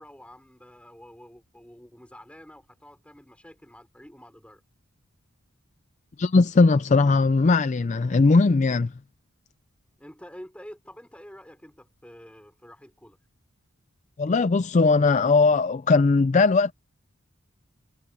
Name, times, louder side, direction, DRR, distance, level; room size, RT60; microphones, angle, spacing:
voice 1, 0.0-4.6 10.0-13.2, equal, 5° left, 5.3 m, -48 dB
voice 2, 6.2-8.9 14.2-16.7, left 3 dB, 35° left, 0.4 m, -19 dB
head